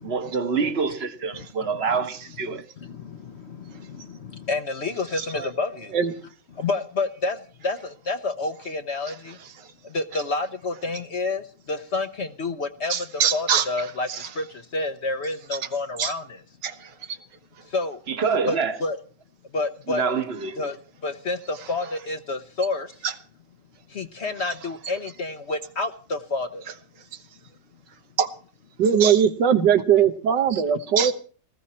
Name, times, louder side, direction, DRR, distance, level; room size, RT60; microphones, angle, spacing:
voice 1, 0.0-2.6 18.1-18.8 19.9-20.6, right 5 dB, 40° right, 1.4 m, -26 dB
voice 2, 1.3-1.7 2.5-6.0 6.6-9.4 9.8-16.4 17.6-18.0 18.5-19.0 19.5-20.0 20.6-20.8 21.0-22.9 23.9-26.7, left 3 dB, 50° left, 1.0 m, -29 dB
voice 3, 5.2-5.5 5.9-6.1 12.9-13.7 14.1-14.3 16.0-16.1 16.6-17.2 23.0-23.1 28.2-28.3 28.8-31.1, right 8 dB, 90° right, 1.9 m, -21 dB
19.0 x 15.0 x 4.3 m
omnidirectional pair, 1.8 m